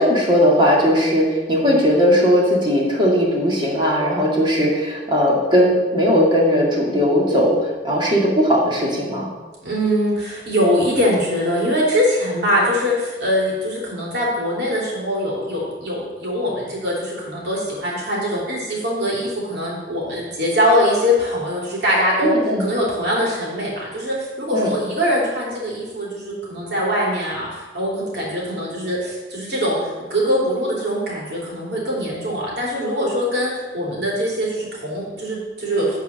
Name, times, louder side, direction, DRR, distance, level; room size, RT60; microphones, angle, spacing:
voice 1, 0.0-9.3 22.2-22.7 24.5-24.8, equal, 30° right, -3 dB, 2.2 m, -18 dB
voice 2, 9.6-36.0, equal, 70° right, -4 dB, 3.3 m, -22 dB
9.2 x 4.7 x 6.5 m, 1.3 s
head